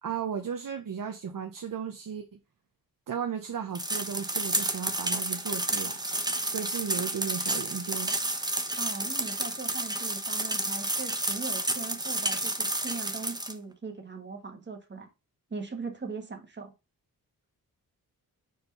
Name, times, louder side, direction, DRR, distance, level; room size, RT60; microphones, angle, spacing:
voice 1, 0.0-2.3 3.1-6.1 6.4-8.1, right 7 dB, 60° right, 1.0 m, -35 dB
sound 1, 3.7-13.5, right 1 dB, 10° right, 0.9 m, -31 dB
voice 2, 8.8-15.1 15.5-16.7, right 4 dB, 30° right, 1.6 m, -40 dB
5.0 x 4.6 x 5.3 m
wide cardioid pair, 100°, 36 cm